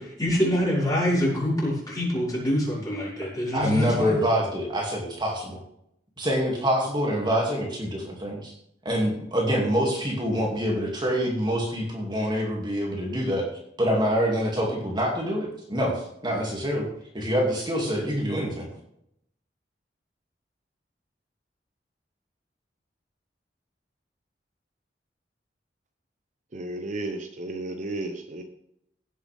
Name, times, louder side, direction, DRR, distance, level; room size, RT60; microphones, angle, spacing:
voice 1, 0.0-4.2, equal, 20° left, -6 dB, 5.5 m, -25 dB
voice 2, 3.5-5.6 6.2-8.5 8.8-13.5 13.8-16.9 17.1-18.7, equal, 25° right, -2 dB, 2.5 m, -26 dB
voice 3, 26.5-28.4, right 2 dB, 45° right, 5 dB, 0.9 m, -33 dB
16.5 x 7.9 x 3.6 m, 0.76 s
head